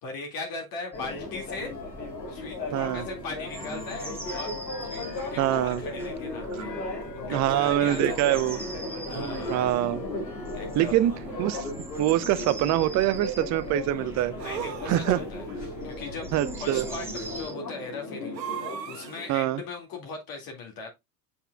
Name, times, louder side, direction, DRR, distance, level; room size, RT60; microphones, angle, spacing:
voice 1, 0.0-1.7 2.3-4.6 4.8-6.7 7.1-8.6 8.8-9.7 10.5-11.2 14.4-16.3 16.6-20.9, left 3 dB, 45° left, 2.2 m, -39 dB
Church bell, 0.9-19.3, left 2 dB, 80° left, 2.1 m, -36 dB
sound 1, 0.9-17.5, right 3 dB, 5° right, 1.7 m, -43 dB
voice 2, 2.7-3.1 5.4-5.8 6.5-6.7 7.3-8.6 9.2-9.3 9.5-10.0 10.8-11.1 11.4-11.7 12.0-14.4 14.9-15.2 16.3-16.8 19.3-19.6, right 13 dB, 35° right, 0.7 m, -24 dB
sound 2, 8.0-8.1 9.1-9.8 11.0-11.7 14.4-15.4 18.3-19.4, right 8 dB, 80° right, 1.3 m, -38 dB
8.2 x 5.6 x 2.3 m
figure-of-eight pair, 80°, 49 cm